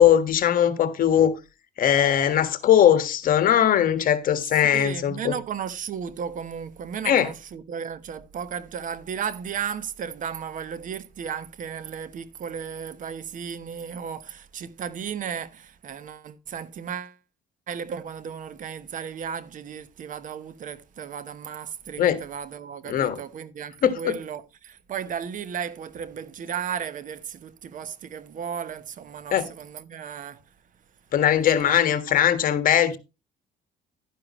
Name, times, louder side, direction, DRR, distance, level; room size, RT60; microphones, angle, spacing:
voice 1, 0.0-1.3 1.8-5.3 7.0-7.3 22.0-22.2 22.9-23.2 23.8-24.1 29.3-29.5 31.1-33.0, left 10 dB, 55° left, 1.6 m, -20 dB
voice 2, 4.4-17.2 17.7-30.4 31.4-31.8, right 7 dB, 50° right, 1.1 m, -35 dB
11.5 x 10.0 x 3.1 m
cardioid pair, 110°, 17 cm